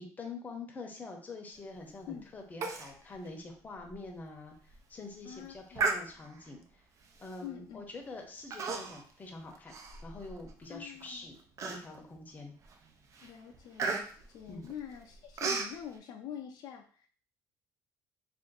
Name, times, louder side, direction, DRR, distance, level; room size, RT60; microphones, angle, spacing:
voice 1, 0.0-4.5 4.9-6.8 7.2-9.7 10.0-12.5 14.5-14.7, left 3 dB, 25° left, 2 dB, 0.7 m, -45 dB
Human voice, 2.6-2.9 3.3-3.4 3.9-4.0 4.5-4.8 5.8-6.5 7.2-7.5 8.5-9.1 9.5-10.5 11.0-11.1 11.6-12.2 12.6-12.9 13.1-15.7, right 4 dB, 45° right, 0.5 m, -35 dB
voice 2, 5.2-5.9 7.4-7.8 10.7-11.3 13.2-17.1, left 9 dB, 70° left, 3 dB, 0.4 m, -45 dB
2.6 x 2.5 x 3.8 m, 0.43 s
cardioid pair, 130°, 7 cm